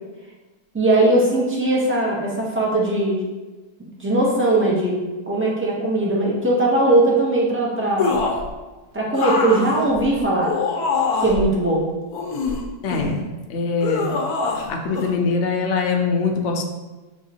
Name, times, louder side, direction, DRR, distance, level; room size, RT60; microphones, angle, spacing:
voice 1, 0.7-3.2 4.0-5.0 5.3-8.2 8.9-10.5 11.2-11.8, right 2 dB, 20° right, -4 dB, 0.3 m, -19 dB
sound 1, 8.0-8.5 9.1-11.5 12.1-13.2 13.8-14.7 15.0-15.1, left 4 dB, 80° left, 1.2 m, -24 dB
voice 2, 12.8-13.1 13.5-14.2 14.7-16.6, left 4 dB, 65° left, 1 dB, 0.8 m, -22 dB
6.2 x 3.0 x 2.8 m, 1.2 s
omnidirectional pair, 1.6 m